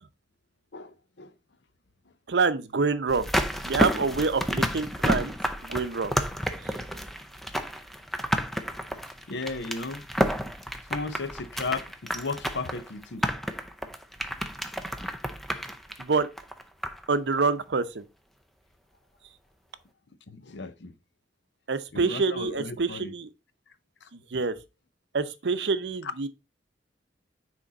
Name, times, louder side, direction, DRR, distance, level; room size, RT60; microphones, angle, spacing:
voice 1, 0.7-1.3 9.3-10.0 10.8-13.2 14.8-14.9 20.3-20.9 21.9-23.1 24.0-24.1 26.0-26.1, left 3 dB, 75° left, 0.7 m, -35 dB
voice 2, 2.3-3.3 3.6-5.3 5.6-6.1 6.6-6.7 16.0-16.3 17.1-18.0 21.7-23.3 24.1-24.5 25.1-26.3, right 4 dB, 75° right, 0.6 m, -26 dB
sound 1, 3.1-17.1 17.4-17.5, equal, ahead, 0.5 m, -30 dB
6.2 x 4.4 x 4.0 m
head